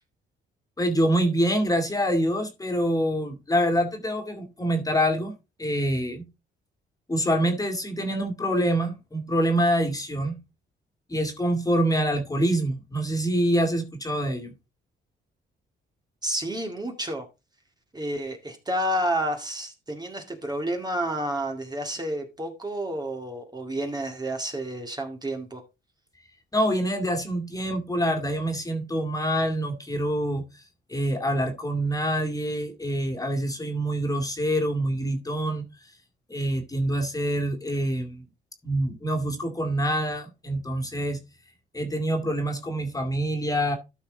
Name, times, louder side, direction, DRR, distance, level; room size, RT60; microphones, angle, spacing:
voice 1, 0.8-5.3 5.6-6.2 7.1-10.4 11.1-14.5 26.5-30.6 30.9-35.7 36.3-38.3 38.6-41.2 41.7-43.8, equal, 15° left, 2.3 m, -26 dB
voice 2, 16.2-17.3 17.9-25.6, right 1 dB, 20° right, 2.1 m, -30 dB
13.0 x 4.8 x 3.9 m
cardioid pair, 90°, 20 cm